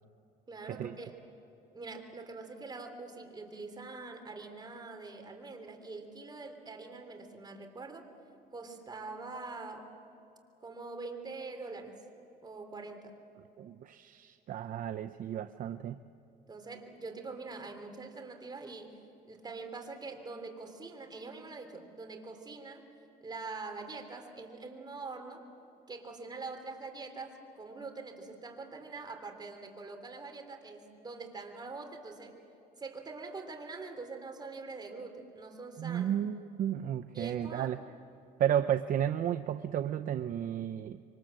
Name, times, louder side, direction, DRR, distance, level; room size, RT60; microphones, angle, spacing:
voice 1, 0.5-1.2 1.7-8.1 8.5-9.9 10.6-12.0 12.4-13.2 16.5-19.0 19.3-22.8 23.2-25.4 25.9-32.4 32.8-36.2 37.1-37.8, right 3 dB, 25° right, 4 dB, 3.3 m, -44 dB
voice 2, 13.6-16.0 35.8-37.8 38.4-41.0, right 10 dB, 55° right, 10 dB, 0.6 m, -33 dB
26.0 x 24.0 x 7.7 m, 2.8 s
cardioid pair, 110°, 17 cm